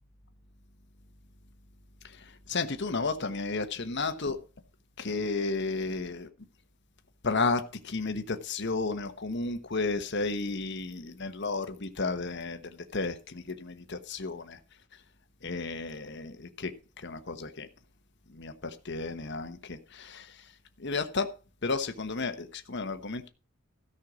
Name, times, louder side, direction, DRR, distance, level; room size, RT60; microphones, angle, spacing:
voice 1, 2.5-4.4 5.0-6.3 7.2-12.6 12.9-14.6 15.4-16.7 17.0-17.7 18.3-18.5 18.8-20.3 20.8-21.3 21.6-23.3, left 3 dB, 55° left, 7 dB, 1.2 m, -32 dB
13.5 x 5.7 x 6.2 m, 0.34 s
head